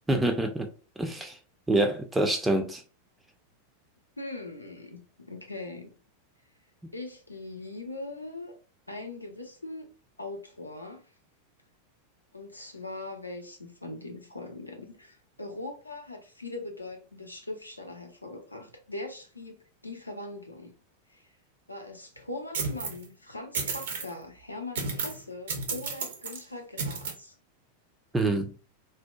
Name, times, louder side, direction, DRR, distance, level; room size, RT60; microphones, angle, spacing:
voice 1, 0.1-0.7 1.0-1.4 1.7-2.8 28.1-28.5, right 2 dB, 10° right, 0.3 m, -26 dB
voice 2, 4.2-5.9 6.9-8.6 8.9-9.9 10.2-11.1 12.3-19.5 19.8-20.7 21.1-21.3 21.7-27.4, left 2 dB, 85° left, 0.5 m, -41 dB
sound 1, 22.5-23.0 23.5-24.1 24.7-25.2 25.5-26.4 26.8-27.1, right 4 dB, 60° right, 0.5 m, -32 dB
2.7 x 2.1 x 2.3 m
figure-of-eight pair, 90°, 0 cm